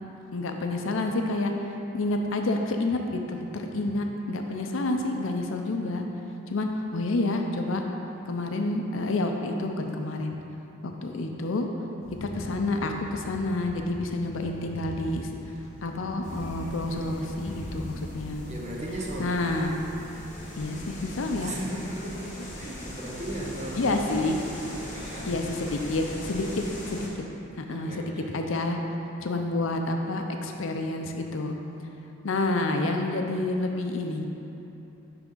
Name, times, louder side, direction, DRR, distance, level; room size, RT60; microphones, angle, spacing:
voice 1, 0.3-1.5 1.9-6.0 6.5-7.8 8.3-10.4 10.8-11.7 12.2-15.3 15.8-18.4 19.2-19.7 20.6-21.5 23.8-24.4 25.3-27.1 27.6-28.8 29.2-31.5 32.2-34.2, left 2 dB, 70° left, 3 dB, 0.5 m, -29 dB
sound 1, 12.0-17.8, equal, 80° right, 1.2 m, -42 dB
sound 2, 16.2-27.1, equal, 35° left, 1.2 m, -40 dB
voice 2, 18.5-19.5 21.4-23.9 24.7-25.4 26.3-26.7 27.7-28.4, right 1 dB, 35° right, -3 dB, 0.9 m, -37 dB
10.5 x 3.6 x 3.8 m, 2.9 s
head